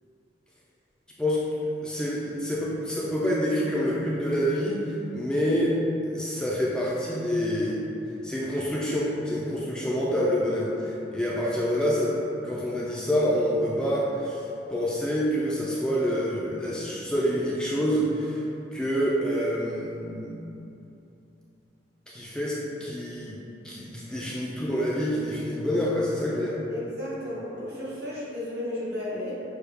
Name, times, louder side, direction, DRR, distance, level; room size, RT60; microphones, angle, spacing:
voice 1, 1.8-5.7 6.0-7.8 8.2-18.4 18.7-20.4 22.1-23.4 23.6-26.6, equal, 5° left, -6 dB, 0.4 m, -27 dB
voice 2, 26.7-29.3, left 1 dB, 65° right, -9 dB, 1.4 m, -33 dB
6.3 x 2.3 x 3.4 m, 2.8 s
head